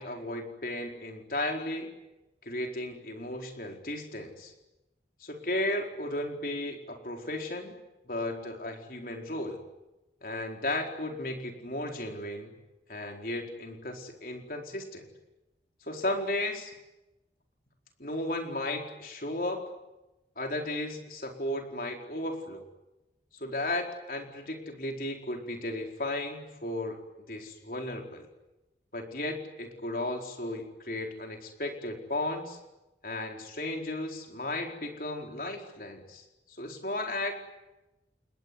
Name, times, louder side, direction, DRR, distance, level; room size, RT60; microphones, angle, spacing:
voice 1, 0.0-1.9 2.4-4.5 5.2-7.8 8.1-9.6 10.2-12.5 12.9-15.1 15.9-16.7 18.0-19.6 20.4-22.6 23.4-27.0 27.3-28.3 28.9-32.6 33.0-37.3, left 1 dB, 50° left, 3 dB, 4.5 m, -35 dB
29.0 x 21.0 x 9.6 m, 0.98 s
head